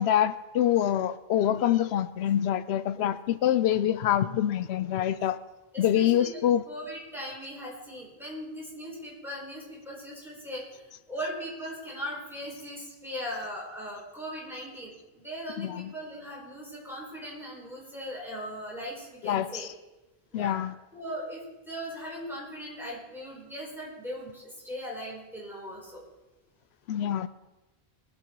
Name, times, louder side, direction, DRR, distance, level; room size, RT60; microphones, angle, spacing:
voice 1, 0.0-5.4 5.8-6.6 15.6-15.9 19.2-19.7 20.3-20.7 26.9-27.3, left 11 dB, 90° left, 14 dB, 0.8 m, -25 dB
voice 2, 5.7-6.4 6.7-19.7 20.3-20.6 20.9-26.0, equal, ahead, -5 dB, 4.4 m, -39 dB
20.5 x 7.8 x 4.6 m, 1.1 s
omnidirectional pair, 1.0 m